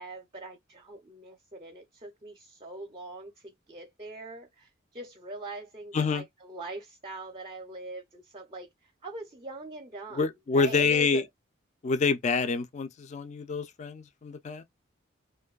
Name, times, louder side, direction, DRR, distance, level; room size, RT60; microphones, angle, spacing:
voice 1, 0.0-10.3 10.5-11.2, right 2 dB, 30° right, 0.5 m, -42 dB
voice 2, 5.9-6.2 10.1-11.2 11.8-14.6, left 4 dB, 35° left, 0.3 m, -27 dB
2.6 x 2.2 x 2.2 m
head